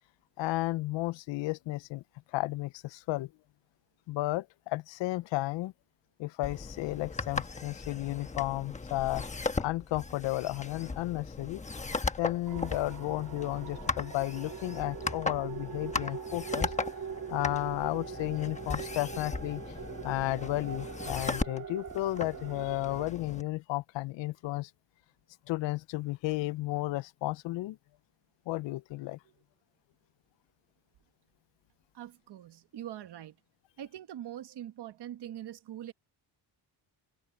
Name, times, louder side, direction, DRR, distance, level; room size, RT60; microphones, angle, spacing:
voice 1, 0.4-2.0 2.3-3.3 4.1-5.7 6.2-9.2 9.6-11.6 12.2-16.7 17.3-19.6 20.0-24.7 25.5-27.8 28.5-29.2, left 18 dB, 75° left, 0.5 m, -33 dB
sound 1, 6.4-23.4, left 3 dB, 15° left, 1.1 m, -37 dB
sound 2, 12.5-23.1, right 7 dB, 45° right, 2.1 m, -42 dB
voice 2, 31.9-33.4 33.8-35.9, right 11 dB, 60° right, 1.4 m, -43 dB
cardioid pair, 155°, 45 cm